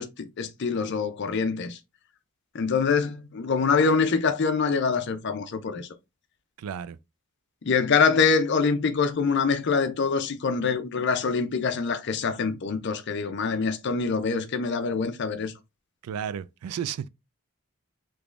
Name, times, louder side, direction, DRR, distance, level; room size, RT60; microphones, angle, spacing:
voice 1, 0.0-1.8 2.5-5.9 7.6-15.5, left 5 dB, 50° left, 0.5 m, -25 dB
voice 2, 6.6-7.0 16.0-17.1, right 8 dB, 85° right, 0.3 m, -33 dB
3.5 x 3.0 x 2.4 m
head